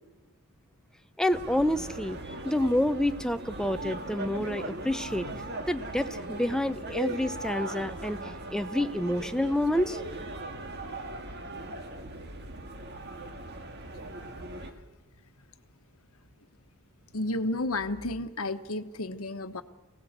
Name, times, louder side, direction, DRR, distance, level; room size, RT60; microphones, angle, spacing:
voice 1, 1.2-2.2 2.4-5.3 5.7-8.2 8.5-10.0, left 1 dB, 5° left, 10 dB, 0.7 m, -28 dB
sound 1, 1.3-14.7, right 2 dB, 45° right, 2.1 m, -38 dB
voice 2, 17.1-19.6, left 2 dB, 75° left, 9 dB, 1.2 m, -32 dB
24.0 x 17.5 x 8.1 m, 1.1 s
head